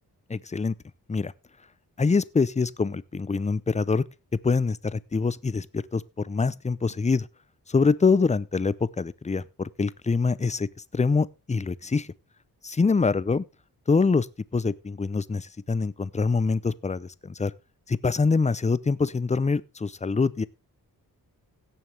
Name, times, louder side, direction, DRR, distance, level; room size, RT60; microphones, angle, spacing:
voice 1, 0.3-0.7 1.1-1.3 2.0-4.0 4.4-7.3 7.7-10.7 10.9-12.1 12.6-13.4 13.9-14.3 14.5-17.5 17.9-20.4, left 4 dB, 20° left, 0.6 m, -25 dB
17.0 x 7.1 x 3.4 m
cardioid pair, 90°, 39 cm